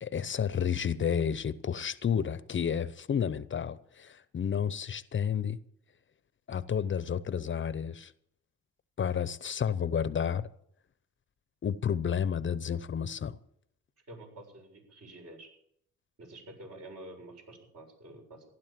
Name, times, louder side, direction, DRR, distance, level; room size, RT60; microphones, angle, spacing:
voice 1, 0.0-5.6 6.5-8.1 9.0-10.5 11.6-13.4, left 7 dB, 40° left, 0.8 m, -31 dB
voice 2, 14.1-15.5 16.2-18.4, right 1 dB, 55° right, 7.2 m, -48 dB
15.5 x 11.5 x 7.5 m
cardioid pair, 90°, 30 cm